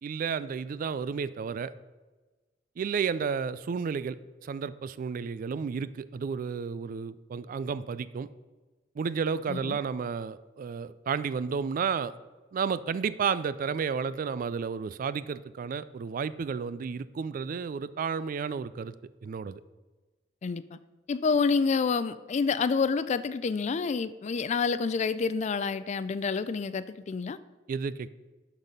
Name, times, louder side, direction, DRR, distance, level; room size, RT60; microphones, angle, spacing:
voice 1, 0.0-1.7 2.8-4.2 4.4-8.3 9.0-12.1 12.5-18.9 19.2-19.6 27.7-28.1, right 6 dB, 50° right, 16 dB, 0.3 m, -32 dB
voice 2, 20.4-20.8 21.1-27.4, left 5 dB, 40° left, 14 dB, 0.3 m, -28 dB
11.5 x 4.1 x 5.2 m, 1.2 s
head